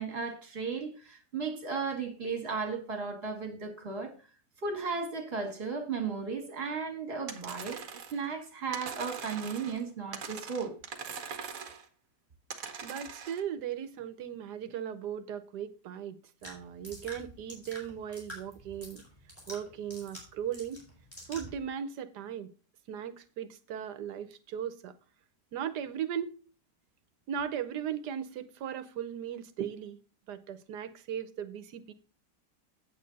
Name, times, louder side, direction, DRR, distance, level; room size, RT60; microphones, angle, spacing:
voice 1, 0.0-4.1 4.6-7.8 8.1-10.7, right 5 dB, 35° right, 2.2 m, -35 dB
sound 1, 7.3-8.2 8.7-9.8 10.1-11.9 12.5-13.4, right 6 dB, 60° right, 1.4 m, -42 dB
voice 2, 12.8-19.0 19.5-20.8 21.3-22.5 22.9-24.9 25.5-26.4 27.3-30.0 30.3-31.9, right 9 dB, 80° right, 1.4 m, -37 dB
sound 2, 16.4-21.6, equal, 10° left, 4.6 m, -48 dB
8.6 x 8.1 x 4.0 m
omnidirectional pair, 1.8 m